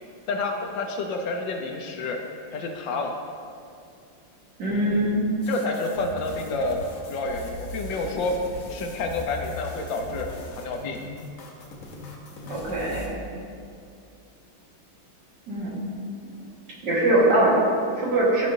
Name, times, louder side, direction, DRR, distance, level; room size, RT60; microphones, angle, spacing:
voice 1, 0.3-2.2 2.5-3.1 5.5-8.3 8.7-10.3 10.6-11.0, left 3 dB, 75° left, 2 dB, 1.3 m, -29 dB
voice 2, 4.6-5.2 12.5-13.2 15.5-15.8 16.8-18.5, right 1 dB, 60° right, -6 dB, 2.1 m, -22 dB
sound 1, 5.4-13.1, left 1 dB, 55° left, 1.0 m, -39 dB
12.0 x 5.2 x 2.6 m, 2.5 s
omnidirectional pair, 2.2 m